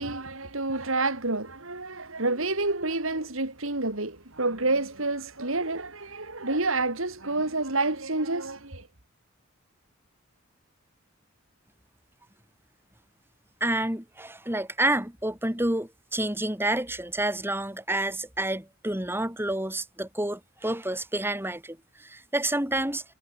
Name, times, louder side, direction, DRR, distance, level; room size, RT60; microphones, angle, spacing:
voice 1, 0.0-8.9, right 2 dB, 70° right, 4.0 m, -29 dB
voice 2, 13.6-23.0, right 1 dB, 10° right, 4.5 m, -29 dB
head